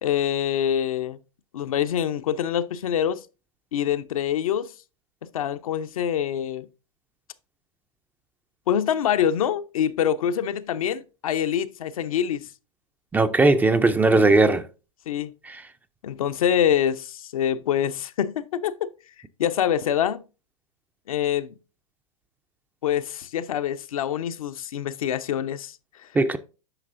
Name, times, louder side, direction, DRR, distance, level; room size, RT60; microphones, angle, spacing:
voice 1, 0.0-1.2 1.5-3.2 3.7-4.7 5.3-6.7 8.7-12.5 15.1-15.3 16.0-18.9 19.4-20.2 21.1-21.6 22.8-26.4, left 9 dB, 75° left, 0.7 m, -25 dB
voice 2, 13.1-14.6 15.5-15.6 26.2-26.4, right 2 dB, 10° right, 0.4 m, -18 dB
9.0 x 5.9 x 2.5 m
hypercardioid pair, 110°, 18 cm